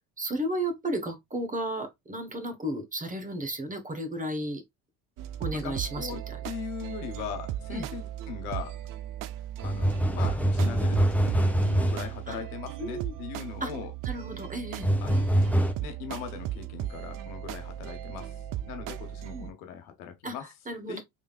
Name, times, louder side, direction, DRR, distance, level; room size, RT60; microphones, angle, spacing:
voice 1, 0.2-4.6 5.4-6.4 7.7-7.9 12.3-12.4 12.8-13.1 13.6-13.7 14.0-14.9 19.3-19.5 20.2-21.0, right 1 dB, 20° right, 1.2 m, -33 dB
sound 1, 5.2-19.5, right 12 dB, 50° right, 0.5 m, -37 dB
voice 2, 5.5-8.8 9.6-13.9 15.0-15.4 15.8-18.4 18.7-20.5 20.9-21.0, left 8 dB, 80° left, 1.1 m, -40 dB
sound 2, 9.6-12.1 14.8-15.7, right 1 dB, 5° left, 0.7 m, -24 dB
3.7 x 3.4 x 2.4 m
hypercardioid pair, 75°, 43 cm